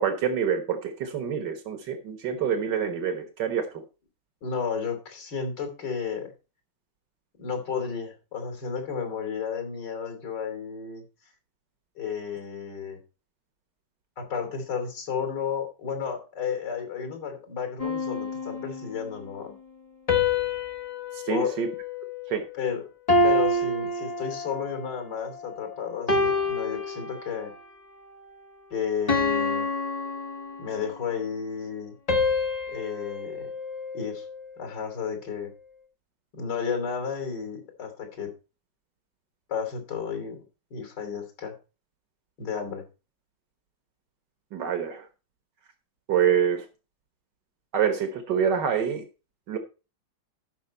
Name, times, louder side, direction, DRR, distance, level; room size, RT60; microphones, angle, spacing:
voice 1, 0.0-3.8 21.1-21.7 22.3-22.4 44.5-45.1 46.1-46.7 47.7-49.0 49.5-49.6, right 8 dB, 80° right, 7 dB, 1.9 m, -26 dB
voice 2, 4.4-6.3 7.4-11.0 12.0-13.0 14.2-19.5 21.3-21.5 22.5-22.8 23.2-27.5 28.7-29.7 30.6-31.9 32.7-33.5 33.9-34.2 34.6-35.5 36.3-38.3 39.5-40.4 40.7-41.5 42.4-42.8, left 6 dB, 85° left, 5 dB, 3.8 m, -32 dB
sound 1, 17.8-19.1 20.1-22.6 23.1-24.8 25.4-25.6 26.1-27.6 28.1-28.4 29.1-31.0 32.1-34.5, left 3 dB, 25° left, 1.2 m, -28 dB
13.0 x 6.0 x 4.2 m, 0.31 s
omnidirectional pair, 1.8 m